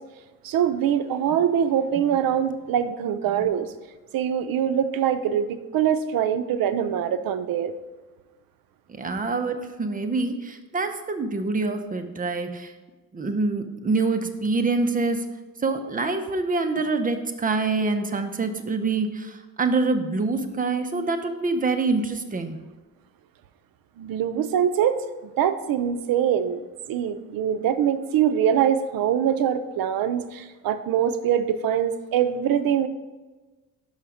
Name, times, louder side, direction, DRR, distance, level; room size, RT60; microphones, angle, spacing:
voice 1, 0.4-3.7 4.1-7.7 24.0-32.9, right 9 dB, 80° right, 11 dB, 0.6 m, -23 dB
voice 2, 9.0-12.7 13.1-15.2 15.6-22.6, right 3 dB, 25° right, 7 dB, 0.7 m, -26 dB
5.7 x 5.6 x 4.9 m, 1.2 s
cardioid pair, 105°, 34 cm